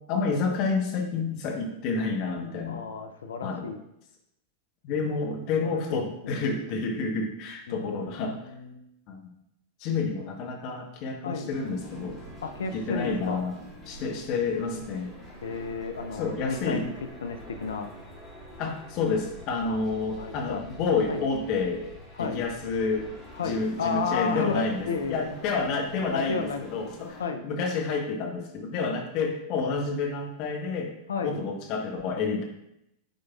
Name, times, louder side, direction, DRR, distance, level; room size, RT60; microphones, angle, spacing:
voice 1, 0.1-2.9 3.4-3.7 4.8-8.4 9.1-9.3 9.8-12.2 12.7-13.6 13.9-15.1 16.2-16.8 18.6-21.9 22.2-23.1 23.4-30.9 31.2-32.4, left 4 dB, 45° left, 2 dB, 1.0 m, -29 dB
voice 2, 2.7-3.8 5.0-6.4 7.7-8.9 11.2-11.5 12.4-13.5 15.4-16.9 17.2-17.9 19.6-19.8 20.2-20.6 21.1-21.2 22.2-22.4 23.4-25.3 26.1-26.9 27.2-27.5 31.1-31.4, left 5 dB, 70° left, 7 dB, 0.5 m, -33 dB
sound 1, 11.5-27.3, equal, ahead, 2.4 m, -46 dB
9.1 x 5.1 x 2.3 m, 0.82 s
figure-of-eight pair, 90°, 0 cm